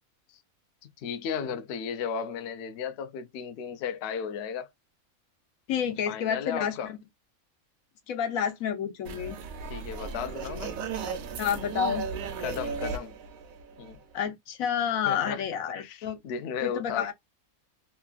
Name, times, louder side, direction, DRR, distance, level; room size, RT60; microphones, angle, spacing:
voice 1, 0.8-4.7 6.1-6.9 9.7-10.8 12.4-13.2 13.8-14.0 15.1-15.4 15.8-17.1, left 7 dB, 65° left, 0.7 m, -35 dB
voice 2, 5.7-6.8 8.1-9.4 11.4-12.1 14.1-16.2 16.6-17.1, left 8 dB, 90° left, 1.2 m, -29 dB
sound 1, 9.0-14.2, right 5 dB, 85° right, 1.1 m, -36 dB
3.0 x 2.3 x 2.3 m
omnidirectional pair, 1.4 m